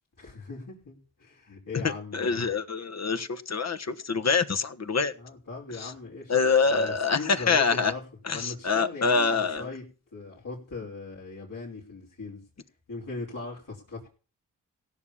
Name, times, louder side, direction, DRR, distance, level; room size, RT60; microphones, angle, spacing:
voice 1, 0.2-2.6 5.2-6.3 6.7-8.0 8.3-9.9 10.1-12.4 12.9-14.1, left 3 dB, 65° left, 5.2 m, -39 dB
voice 2, 1.8-5.1 5.8-5.9 6.3-7.9 8.2-9.7, left 5 dB, 50° left, 1.4 m, -25 dB
16.5 x 7.2 x 7.1 m
cardioid pair, 50°, 35 cm